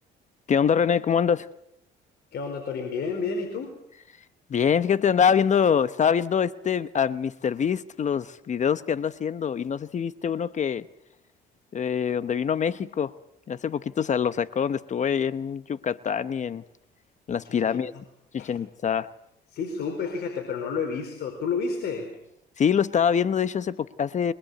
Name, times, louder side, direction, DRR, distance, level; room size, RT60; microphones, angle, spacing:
voice 1, 0.5-1.5 4.5-10.9 11.7-13.1 13.5-16.6 17.3-17.9 18.3-19.1 22.6-24.3, left 7 dB, 40° left, 14 dB, 0.8 m, -24 dB
voice 2, 2.3-3.7 17.6-17.8 18.4-18.5 19.5-22.2, left 5 dB, 65° left, 3 dB, 4.5 m, -30 dB
23.5 x 20.5 x 8.2 m, 0.78 s
cardioid pair, 95°, 19 cm